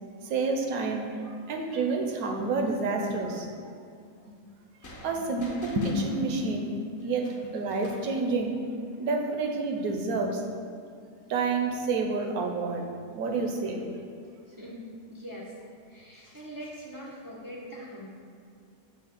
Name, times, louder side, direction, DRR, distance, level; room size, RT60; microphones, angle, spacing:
voice 1, 0.3-3.5 5.0-6.7 7.0-8.6 9.0-10.4 11.3-12.8 13.1-13.8, right 3 dB, 70° right, 2 dB, 1.2 m, -29 dB
sound 1, 4.8-8.2, left 1 dB, 50° left, 1.2 m, -47 dB
voice 2, 14.5-15.5 15.9-18.1, equal, 30° right, -5 dB, 0.4 m, -42 dB
7.3 x 2.8 x 5.8 m, 2.3 s
omnidirectional pair, 1.6 m